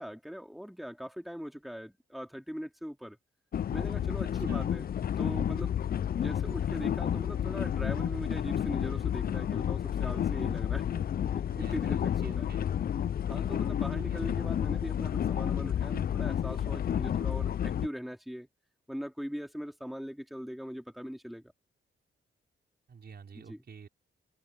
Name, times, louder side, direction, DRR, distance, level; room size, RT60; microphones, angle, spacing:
voice 1, 0.0-3.2 3.7-4.9 5.2-5.7 6.2-11.1 11.3-12.5 13.3-18.5 18.9-21.4 23.3-23.6, equal, ahead, 3.4 m, -40 dB
sound 1, 3.5-17.9, left 9 dB, 50° left, 0.5 m, -31 dB
voice 2, 4.4-4.7 11.5-12.8 13.9-14.3 22.9-23.9, right 6 dB, 50° right, 5.2 m, -50 dB
wide cardioid pair, 125°, 21 cm